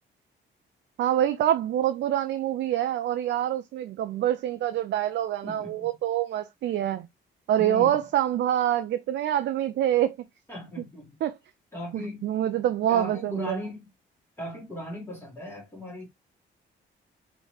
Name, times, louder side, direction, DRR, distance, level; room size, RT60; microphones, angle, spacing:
voice 1, 1.0-7.1 7.5-10.2 11.2-11.4 11.9-13.6, right 11 dB, 65° right, 0.4 m, -26 dB
voice 2, 5.4-5.9 7.6-8.0 10.5-11.2 11.7-12.3 12.8-13.8 14.4-16.1, left 1 dB, 10° left, 1.8 m, -38 dB
3.2 x 3.1 x 3.1 m
cardioid pair, 90°, 20 cm